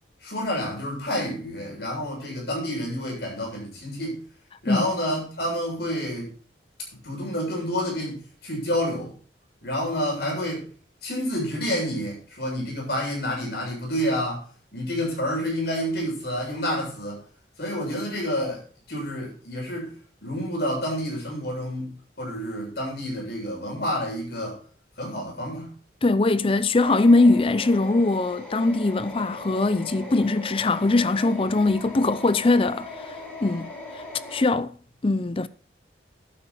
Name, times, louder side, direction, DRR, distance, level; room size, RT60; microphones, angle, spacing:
voice 1, 0.2-4.2 4.6-6.3 7.0-9.1 9.6-10.6 11.0-14.4 14.7-17.2 17.6-18.6 18.9-19.9 20.2-24.6 25.0-25.7, equal, 60° left, 7.4 m, -29 dB
voice 2, 26.0-33.7 33.9-34.0 34.3-34.8 35.0-35.5, left 2 dB, 30° left, 0.5 m, -21 dB
sound 1, 26.8-34.4, left 1 dB, 10° left, 6.2 m, -39 dB
12.0 x 9.1 x 4.3 m
head